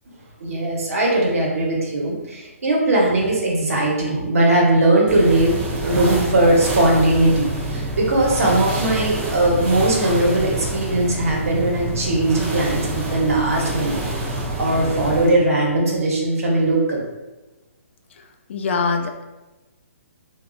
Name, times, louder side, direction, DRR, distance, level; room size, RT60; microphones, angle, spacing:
voice 1, 0.4-5.6 5.8-17.0, right 1 dB, 75° right, -2 dB, 1.0 m, -19 dB
sound 1, 5.1-15.4, right 1 dB, 20° right, 0.5 m, -27 dB
voice 2, 18.5-19.2, left 4 dB, 55° left, 4 dB, 0.4 m, -23 dB
3.0 x 2.3 x 2.5 m, 1.1 s
hypercardioid pair, 150°, 8 cm